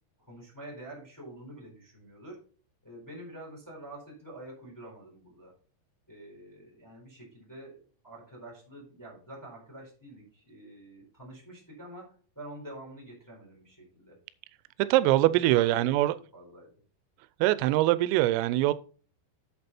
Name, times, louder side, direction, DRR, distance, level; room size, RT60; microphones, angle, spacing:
voice 1, 0.2-2.4 2.8-5.5 6.1-14.2 15.6-15.9 16.3-16.7, right 1 dB, 5° left, 3.1 m, -47 dB
voice 2, 14.8-16.2 17.4-18.7, right 16 dB, 90° right, 3.2 m, -23 dB
8.2 x 6.9 x 4.2 m
omnidirectional pair, 5.8 m